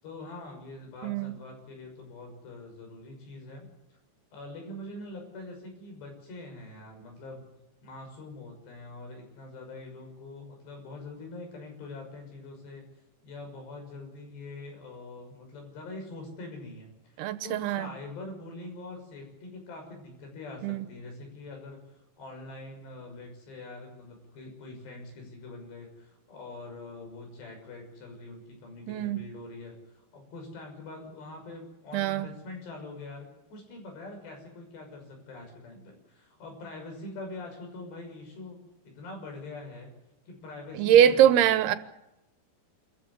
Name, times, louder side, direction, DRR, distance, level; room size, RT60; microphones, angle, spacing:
voice 1, 0.0-3.7 4.3-7.5 7.8-12.9 13.2-21.8 22.2-38.6 39.0-39.9 40.3-41.6, left 2 dB, 85° left, 8.2 m, -44 dB
voice 2, 1.0-1.3 17.2-17.9 20.6-20.9 28.9-29.3 31.9-32.3 40.7-41.8, right 10 dB, 80° right, 3.0 m, -22 dB
26.0 x 14.5 x 9.8 m
omnidirectional pair, 4.8 m